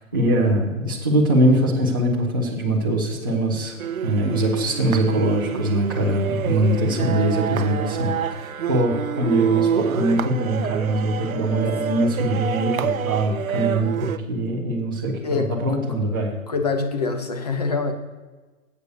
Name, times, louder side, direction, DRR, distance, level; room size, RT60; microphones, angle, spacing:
voice 1, 0.1-3.8 4.0-16.4, right 1 dB, 15° right, -6 dB, 0.6 m, -22 dB
sound 1, 3.8-14.2, right 8 dB, 75° right, 0.7 m, -27 dB
voice 2, 15.2-15.8 16.5-17.9, left 4 dB, 30° left, 6 dB, 0.8 m, -25 dB
8.2 x 6.5 x 6.6 m, 1.3 s
hypercardioid pair, 175°, 41 cm